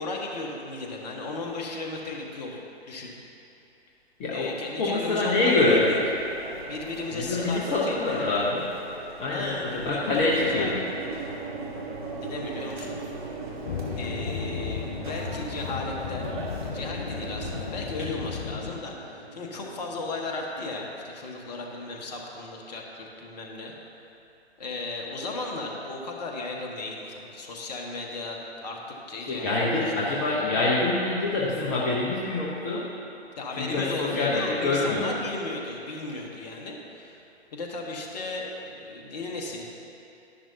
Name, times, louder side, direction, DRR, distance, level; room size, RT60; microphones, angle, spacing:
voice 1, 0.0-2.6 2.9-3.1 4.3-6.0 6.7-8.4 9.3-10.9 12.2-13.0 14.0-16.3 16.6-24.1 24.6-29.9 33.4-37.2 37.5-39.7, left 2 dB, 40° left, 0 dB, 1.3 m, -35 dB
voice 2, 4.2-4.5 4.8-5.9 7.1-8.6 9.2-10.8 29.3-32.9 33.5-35.1, left 2 dB, 15° left, -6 dB, 0.8 m, -25 dB
sound 1, 5.8-17.7, right 3 dB, 45° right, 1.6 m, -41 dB
sound 2, 9.5-21.8, right 2 dB, 15° right, 0.3 m, -41 dB
sound 3, 13.7-18.7, left 6 dB, 55° left, 0.7 m, -35 dB
11.5 x 11.0 x 2.8 m, 2.8 s
figure-of-eight pair, 125°, 33 cm